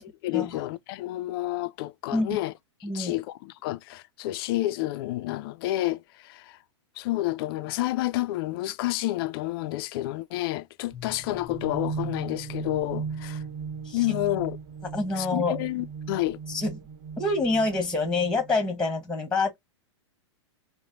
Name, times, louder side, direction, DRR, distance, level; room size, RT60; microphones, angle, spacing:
voice 1, 0.0-2.5 2.8-6.6 7.0-13.4 13.9-14.6 15.1-16.4, left 16 dB, 50° left, 0.4 m, -30 dB
voice 2, 2.8-3.1 13.9-14.0 14.9-15.6 16.5-16.7 17.2-19.6, left 3 dB, 5° left, 1.1 m, -26 dB
sound 1, 10.9-18.7, right 5 dB, 50° right, 1.5 m, -37 dB
3.2 x 2.1 x 2.5 m
hypercardioid pair, 110°, 16 cm